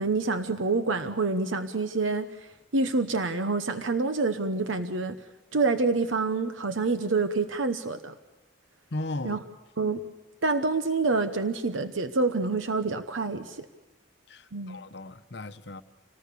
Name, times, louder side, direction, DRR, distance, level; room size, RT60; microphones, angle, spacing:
voice 1, 0.0-2.3 2.7-5.1 5.5-8.1 9.2-9.4 9.8-10.0 10.4-13.7 14.5-14.8, right 3 dB, 80° right, 9 dB, 1.0 m, -27 dB
voice 2, 8.9-9.4 14.3-15.8, left 2 dB, 60° left, 11 dB, 0.9 m, -36 dB
27.0 x 19.0 x 6.9 m, 1.1 s
head